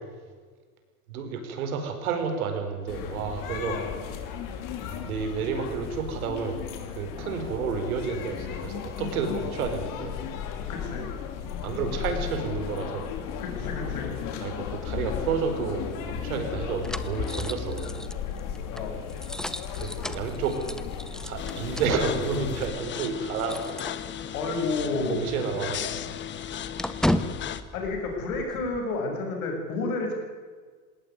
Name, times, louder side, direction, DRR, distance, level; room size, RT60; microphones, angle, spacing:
voice 1, 1.1-3.8 5.0-6.6 6.9-10.2 11.6-13.1 14.4-17.9 19.7-20.6 21.2-24.3 25.1-25.9 26.4-26.5, right 5 dB, 75° right, 6 dB, 5.0 m, -30 dB
sound 1, 2.9-22.7, left 8 dB, 45° left, 3.2 m, -35 dB
voice 2, 3.7-4.0 10.7-11.1 13.4-14.4 18.7-19.0 24.3-25.2 27.7-30.1, left 3 dB, 75° left, 2 dB, 7.7 m, -30 dB
sound 2, 15.9-24.5 24.8-25.0 25.3-28.8, left 1 dB, ahead, 0.7 m, -35 dB
sound 3, 21.4-27.6, left 9 dB, 25° left, 1.1 m, -36 dB
20.0 x 18.0 x 9.7 m, 1.6 s
supercardioid pair, 120°, 43 cm